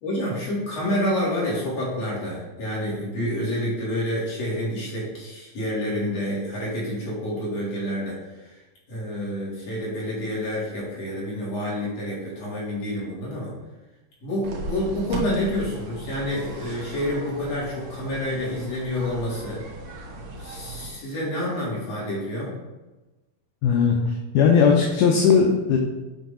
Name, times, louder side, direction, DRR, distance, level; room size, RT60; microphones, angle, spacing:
voice 1, 0.0-8.2 8.9-13.5 14.2-19.6 20.4-22.5, left 1 dB, 55° left, -6 dB, 2.8 m, -28 dB
sound 1, 14.4-20.9, right 2 dB, 90° right, 2.5 m, -37 dB
voice 2, 23.6-25.8, left 6 dB, 80° left, 1 dB, 2.1 m, -18 dB
7.7 x 2.9 x 4.9 m, 1.1 s
omnidirectional pair, 3.8 m